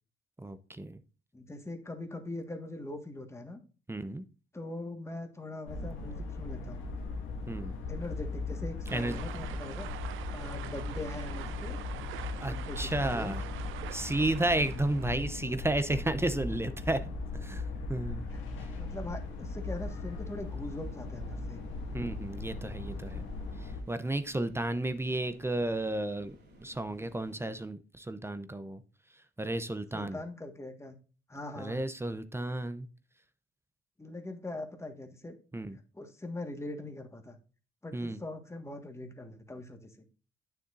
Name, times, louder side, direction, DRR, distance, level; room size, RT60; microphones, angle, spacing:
voice 1, 0.4-1.0 3.9-4.2 7.5-7.8 8.9-9.2 12.4-13.4 13.9-17.1 17.4-18.2 18.6-18.7 21.9-23.2 23.6-28.8 29.1-30.2 31.6-32.9 35.5-35.8 37.9-38.2, right 1 dB, 10° right, 12 dB, 0.6 m, -33 dB
voice 2, 1.3-3.6 4.5-6.9 7.9-9.9 10.3-11.8 12.4-13.3 18.3-18.4 18.7-21.6 29.9-31.0 31.3-31.8 34.0-35.4 35.9-37.4 37.8-40.0, left 2 dB, 15° left, 5 dB, 1.6 m, -42 dB
sound 1, 5.7-23.8, left 3 dB, 85° left, 2.0 m, -38 dB
sound 2, 8.9-15.2, right 12 dB, 85° right, 0.7 m, -45 dB
sound 3, 18.6-27.6, right 1 dB, 60° right, 3.8 m, -58 dB
9.2 x 6.9 x 2.6 m, 0.35 s
cardioid pair, 90°, 20 cm